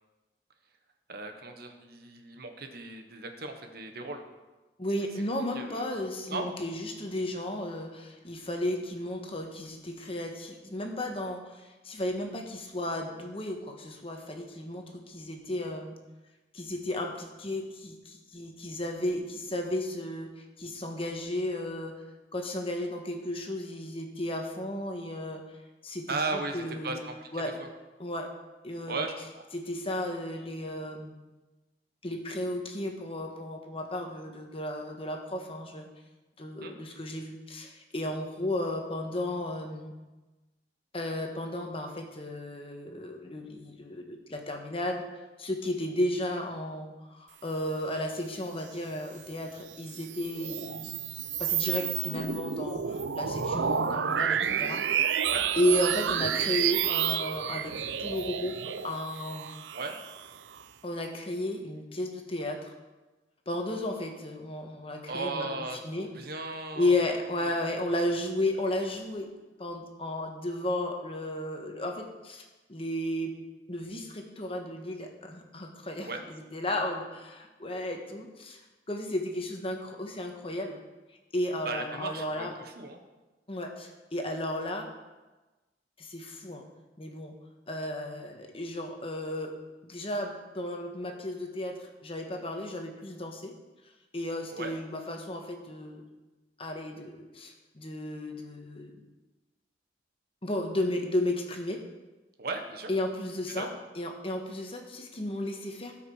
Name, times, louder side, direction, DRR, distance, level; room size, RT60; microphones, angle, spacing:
voice 1, 1.1-4.2 5.5-5.8 6.3-6.5 26.1-27.1 27.6-27.7 28.9-29.1 36.6-36.7 55.2-55.5 59.7-59.9 65.1-67.1 67.4-67.6 76.0-76.2 81.6-83.0 94.5-94.7 102.4-102.9 103.6-103.7, right 3 dB, 60° right, 5 dB, 1.2 m, -36 dB
voice 2, 4.8-16.0 16.5-21.9 22.3-25.6 25.8-27.0 27.3-27.5 28.0-28.3 28.6-29.1 29.5-31.1 32.0-35.9 36.4-39.9 40.9-45.0 45.4-50.9 51.4-54.9 55.6-59.5 60.8-62.7 63.5-65.5 65.8-66.1 66.7-69.3 69.6-72.4 72.7-73.3 73.7-78.6 78.9-80.8 81.3-82.5 83.5-84.9 86.0-86.7 87.0-87.3 87.7-89.6 89.8-93.5 94.1-96.0 96.6-99.0 100.4-101.8 102.9-105.9, left 1 dB, 30° left, 3 dB, 1.3 m, -34 dB
sound 1, 49.7-60.6, right 8 dB, 90° right, 0.5 m, -30 dB
17.0 x 5.8 x 4.9 m, 1.2 s
head